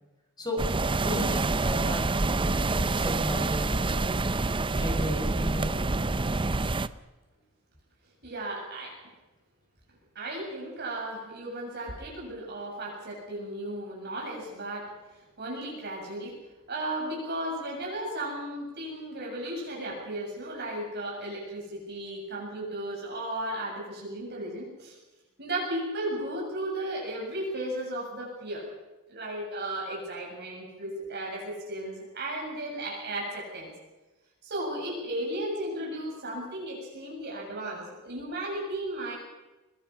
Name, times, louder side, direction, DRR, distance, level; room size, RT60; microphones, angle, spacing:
sound 1, 0.6-6.9, right 3 dB, 25° right, 0.6 m, -27 dB
voice 1, 1.0-4.1 4.7-5.8, equal, 20° left, 2 dB, 6.1 m, -35 dB
voice 2, 8.2-9.0 10.2-16.3 16.7-25.0 25.4-28.7 29.1-33.7 34.4-39.1, right 1 dB, 50° right, -2 dB, 7.4 m, -35 dB
23.0 x 22.0 x 5.8 m, 1.1 s
head